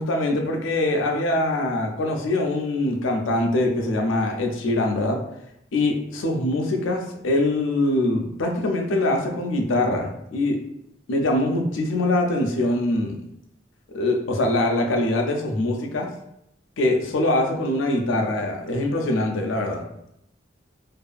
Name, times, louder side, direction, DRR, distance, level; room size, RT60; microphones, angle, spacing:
voice 1, 0.0-5.2 5.7-10.6 11.1-13.2 13.9-16.1 16.8-19.8, left 2 dB, 80° left, 2 dB, 0.5 m, -23 dB
2.6 x 2.4 x 2.4 m, 0.80 s
head